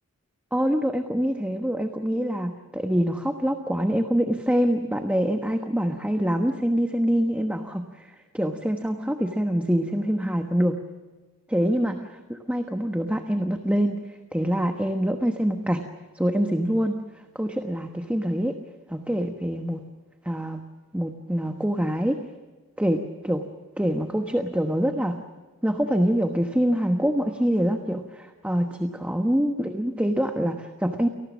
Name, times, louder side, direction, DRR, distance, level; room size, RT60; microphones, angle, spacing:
voice 1, 0.5-10.8 11.5-14.0 14.3-15.8 16.1-17.0 17.3-18.6 18.9-19.8 20.2-20.6 20.9-22.2 22.8-23.4 23.8-25.2 25.6-31.1, equal, 5° right, 5 dB, 1.2 m, -25 dB
29.5 x 19.0 x 6.3 m, 1.3 s
head